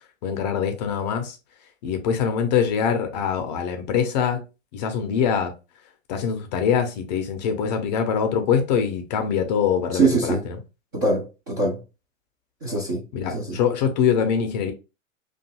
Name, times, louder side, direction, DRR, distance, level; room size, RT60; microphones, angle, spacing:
voice 1, 0.2-1.4 1.8-4.4 4.7-5.5 6.1-10.6 13.1-14.7, left 7 dB, 35° left, 0.5 m, -23 dB
voice 2, 9.9-10.4 10.9-11.8 12.6-13.0 13.3-13.6, right 3 dB, 15° right, 0.3 m, -23 dB
2.6 x 2.3 x 2.8 m
figure-of-eight pair, 105°, 39 cm